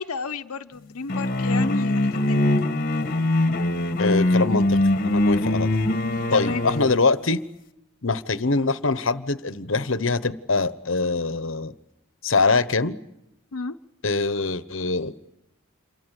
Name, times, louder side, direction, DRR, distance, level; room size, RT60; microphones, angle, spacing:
voice 1, 0.0-2.5 6.3-6.6 13.5-13.8, left 4 dB, 85° left, 8 dB, 0.9 m, -32 dB
sound 1, 1.1-7.0, left 1 dB, 40° left, 1.4 m, -22 dB
voice 2, 4.0-4.8 5.0-5.8 6.3-7.4 8.0-11.7 12.2-13.0 14.0-15.4, left 3 dB, 60° left, 13 dB, 1.1 m, -23 dB
28.0 x 23.5 x 8.3 m, 0.85 s
head